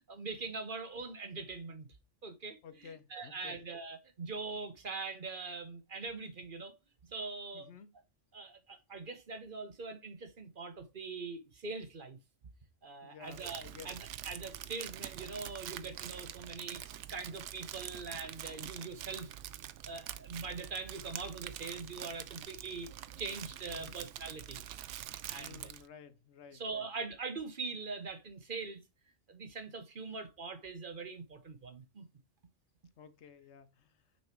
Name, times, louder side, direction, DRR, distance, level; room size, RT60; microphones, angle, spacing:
voice 1, 0.1-1.9 2.2-6.7 7.1-7.7 8.3-12.2 12.8-14.0 14.2-16.8 17.1-19.3 19.9-22.9 23.2-24.6 25.3-25.7 26.5-28.8 29.3-32.1, right 4 dB, 50° right, 1.2 m, -42 dB
voice 2, 2.6-3.6 7.5-7.9 13.0-14.0 23.7-24.0 25.3-26.9 33.0-34.0, left 7 dB, 70° left, 1.0 m, -53 dB
Crumpling crinkling, 13.3-25.9, right 11 dB, 85° right, 0.9 m, -45 dB
6.3 x 4.3 x 4.6 m
omnidirectional pair, 1.2 m